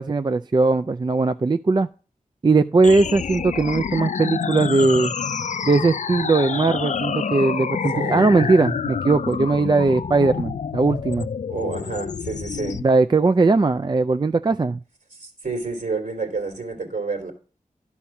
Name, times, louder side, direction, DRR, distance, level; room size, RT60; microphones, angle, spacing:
voice 1, 0.0-1.9 2.4-5.1 5.6-11.3 12.8-14.8, right 3 dB, 30° right, 0.4 m, -19 dB
sound 1, 2.8-12.8, left 6 dB, 60° left, 0.4 m, -28 dB
voice 2, 7.9-8.3 11.5-12.8 15.2-17.3, right 3 dB, 65° right, 3.0 m, -29 dB
11.5 x 4.3 x 5.8 m
wide cardioid pair, 55°, 14 cm